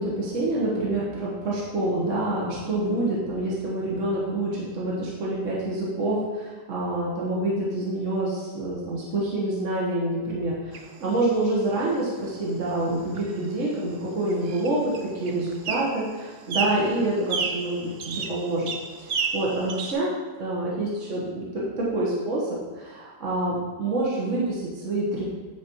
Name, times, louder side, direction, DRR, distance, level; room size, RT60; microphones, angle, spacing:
voice 1, 0.0-18.7 19.0-20.1 20.4-22.5 22.7-25.2, right 2 dB, 50° right, -6 dB, 1.5 m, -27 dB
sound 1, 10.7-19.9, right 5 dB, 85° right, 0.5 m, -34 dB
9.0 x 4.2 x 4.5 m, 1.3 s
omnidirectional pair, 1.8 m